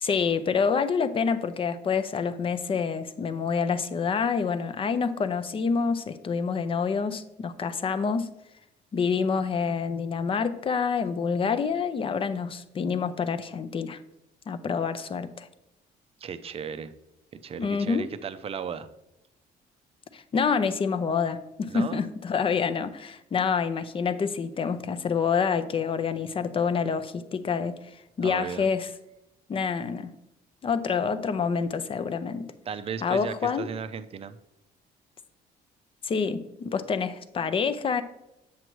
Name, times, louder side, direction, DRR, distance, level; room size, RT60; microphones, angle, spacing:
voice 1, 0.0-8.3 8.9-14.0 14.5-15.5 17.6-18.1 20.1-28.9 29.5-30.1 30.6-32.4 33.0-33.7 36.0-38.0, left 6 dB, 30° left, 10 dB, 0.5 m, -27 dB
voice 2, 16.2-16.9 17.3-18.9 21.7-22.1 28.2-28.7 32.7-34.4, right 7 dB, 35° right, 12 dB, 0.5 m, -35 dB
7.6 x 7.0 x 3.1 m, 0.89 s
cardioid pair, 110°, 17 cm